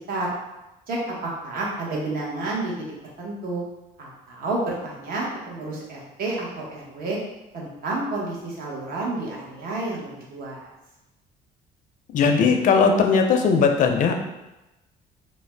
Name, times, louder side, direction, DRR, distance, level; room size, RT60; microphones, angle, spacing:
voice 1, 0.9-2.7 3.2-3.6 4.0-7.2 7.5-10.7, right 2 dB, 60° right, -4 dB, 0.9 m, -30 dB
voice 2, 12.1-14.1, left 5 dB, 50° left, 4 dB, 0.4 m, -18 dB
2.5 x 2.1 x 3.3 m, 0.98 s
cardioid pair, 110°, 17 cm